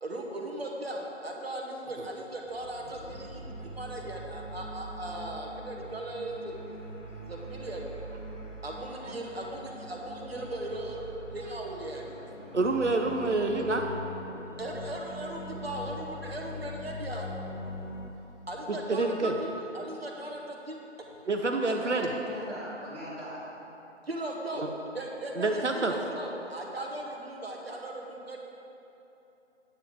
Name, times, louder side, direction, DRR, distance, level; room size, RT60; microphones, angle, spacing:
voice 1, 0.0-6.8 7.3-7.9 8.6-12.1 14.6-17.3 18.5-20.8 21.6-21.7 24.1-28.5, right 1 dB, 55° right, 1 dB, 1.3 m, -38 dB
sound 1, 2.5-18.1, equal, 85° left, 1.1 m, -42 dB
voice 2, 12.5-13.9 18.7-19.3 21.3-22.1 24.6-24.7 25.4-25.9, right 3 dB, 70° right, 4 dB, 0.8 m, -27 dB
voice 3, 21.8-23.4, equal, 5° right, -21 dB, 0.8 m, -41 dB
9.1 x 8.9 x 3.6 m, 3.0 s
figure-of-eight pair, 155°, 36 cm